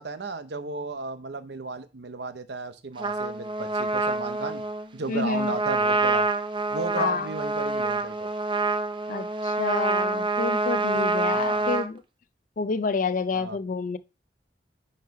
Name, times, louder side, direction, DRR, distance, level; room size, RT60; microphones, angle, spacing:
voice 1, 0.0-4.7 4.9-6.3 6.7-8.3 11.3-11.7 13.3-13.6, right 3 dB, 65° right, 0.8 m, -34 dB
Trumpet, 3.0-11.9, right 3 dB, 30° right, 0.6 m, -27 dB
voice 2, 5.1-5.5 7.0-7.3 9.1-12.0 12.6-14.0, left 4 dB, 50° left, 0.4 m, -29 dB
9.4 x 3.2 x 4.7 m
head